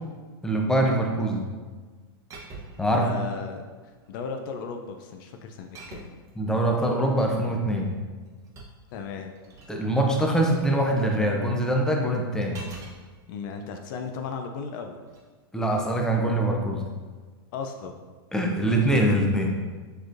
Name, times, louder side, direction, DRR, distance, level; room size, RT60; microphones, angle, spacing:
voice 1, 0.4-1.5 2.8-3.0 6.4-7.9 9.7-12.6 15.5-16.9 18.3-19.5, right 1 dB, 5° left, 0 dB, 0.6 m, -23 dB
sound 1, 2.3-2.9 3.9-4.3 5.7-6.3 8.0-9.8 12.5-13.0 15.0-15.2, right 3 dB, 25° right, 0.8 m, -44 dB
voice 2, 2.8-3.7 4.1-6.1 8.9-9.3 13.3-15.0 17.5-17.9, left 5 dB, 55° left, 4 dB, 0.4 m, -35 dB
6.5 x 3.1 x 2.5 m, 1.4 s
hypercardioid pair, 135°, 13 cm